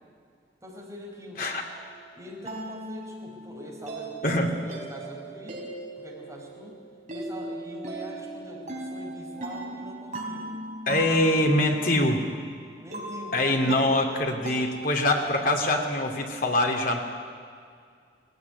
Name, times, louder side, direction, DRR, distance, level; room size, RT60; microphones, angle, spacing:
voice 1, 0.6-1.5 2.1-5.6 6.0-6.7 7.1-10.6 12.8-13.9, left 1 dB, 20° right, -2 dB, 5.1 m, -43 dB
sound 1, 1.6-16.4, right 2 dB, 45° right, 4.1 m, -39 dB
voice 2, 4.2-4.5 10.9-12.2 13.3-17.0, left 1 dB, 50° left, 2 dB, 2.6 m, -24 dB
19.0 x 16.5 x 9.7 m, 2.2 s
head